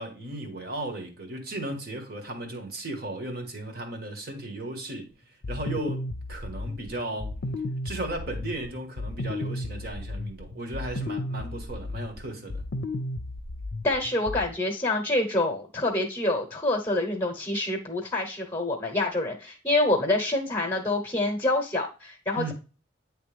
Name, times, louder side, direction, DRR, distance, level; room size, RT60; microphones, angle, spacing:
voice 1, 0.0-5.1 5.5-7.4 7.8-12.6 22.4-22.5, right 2 dB, 50° right, 1.5 m, -36 dB
sound 1, 5.4-14.5, left 2 dB, 60° left, 0.5 m, -34 dB
voice 2, 13.8-22.5, left 2 dB, 15° left, 1.0 m, -26 dB
9.5 x 3.3 x 3.4 m
head